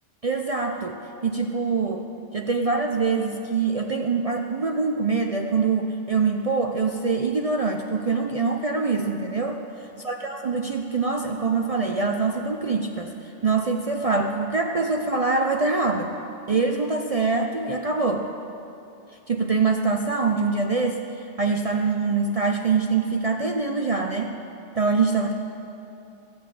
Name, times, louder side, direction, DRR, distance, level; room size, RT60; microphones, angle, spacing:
voice 1, 0.2-2.1 2.3-9.6 10.1-13.1 13.4-16.1 16.5-18.3 19.3-24.3 24.8-25.3, right 4 dB, 45° right, 3 dB, 0.5 m, -24 dB
15.5 x 6.1 x 8.3 m, 2.8 s
omnidirectional pair, 1.2 m